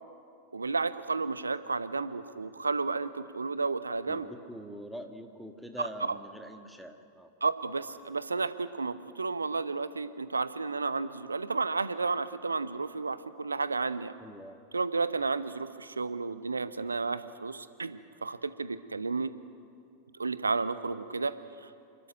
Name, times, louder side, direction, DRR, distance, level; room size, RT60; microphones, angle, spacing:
voice 1, 0.5-4.3 5.8-6.2 7.4-14.2 14.7-19.3 20.2-21.7, right 4 dB, 80° right, 14 dB, 0.9 m, -32 dB
voice 2, 4.1-7.3 14.2-14.6, equal, ahead, 5 dB, 1.8 m, -44 dB
29.0 x 13.5 x 9.4 m, 2.5 s
figure-of-eight pair, 90°, 0 cm